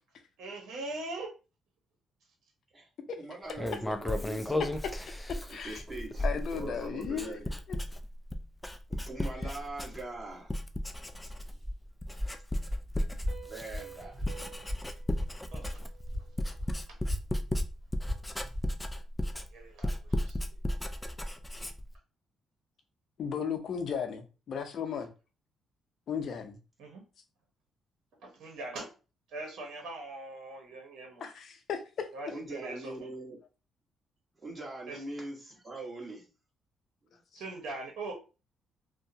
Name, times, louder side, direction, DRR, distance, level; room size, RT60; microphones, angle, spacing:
voice 1, 0.4-1.3 15.5-15.8 19.5-20.3 26.8-27.0 28.2-28.9 29.3-31.3 32.1-32.9 34.9-35.0 37.3-38.1, right 2 dB, 80° right, 1 dB, 0.9 m, -41 dB
voice 2, 3.2-4.7 5.5-6.3 6.5-7.6 8.9-10.5 13.4-14.2 21.3-21.4 32.3-33.4 34.3-36.3, right 2 dB, 25° right, -3 dB, 1.4 m, -42 dB
Writing, 3.5-10.2 10.5-11.7 12.0-22.0, left 1 dB, 10° left, 0.3 m, -35 dB
voice 3, 5.3-5.8 6.2-7.4 7.7-7.8 23.2-25.1 26.1-26.6 31.2-32.1 37.3-37.4, left 7 dB, 60° left, 6 dB, 0.6 m, -35 dB
Walk footsteps, 11.1-15.8 16.1-18.7, left 1 dB, 5° right, 1.1 m, -37 dB
Piano, 13.3-16.7, right 8 dB, 45° right, 0.8 m, -52 dB
2.7 x 2.1 x 2.7 m, 0.32 s
cardioid pair, 90°, 0 cm